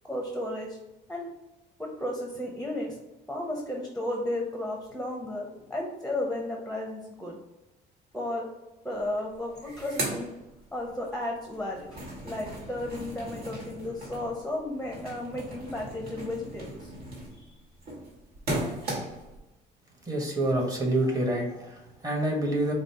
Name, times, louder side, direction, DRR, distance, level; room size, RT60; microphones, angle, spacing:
voice 1, 0.0-0.8 1.1-1.3 1.8-3.0 3.3-7.4 8.1-8.5 8.8-10.3 10.7-12.0 12.2-16.9 17.4-17.6, left 1 dB, ahead, 0 dB, 0.8 m, -34 dB
sound 1, 9.0-9.1 9.3-11.1 11.5-19.4, right 1 dB, 65° right, 1.4 m, -37 dB
voice 2, 20.1-22.7, right 1 dB, 20° right, 0 dB, 1.2 m, -27 dB
5.1 x 2.0 x 4.2 m, 0.98 s
cardioid pair, 110°, 17 cm